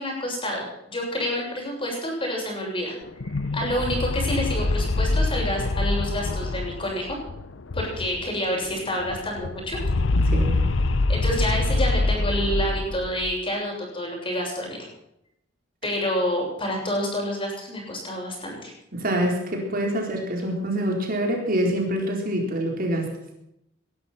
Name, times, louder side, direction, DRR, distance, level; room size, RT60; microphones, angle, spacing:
voice 1, 0.0-2.9 3.5-7.2 7.7-9.8 11.1-14.9 15.8-18.7, equal, 30° left, 0 dB, 7.3 m, -28 dB
sound 1, 3.1-8.4 8.6-8.7 9.0-13.4, left 2 dB, 75° left, 0.7 m, -25 dB
voice 2, 18.9-23.1, right 1 dB, 50° right, 1 dB, 4.2 m, -25 dB
20.0 x 12.0 x 5.9 m, 0.79 s
head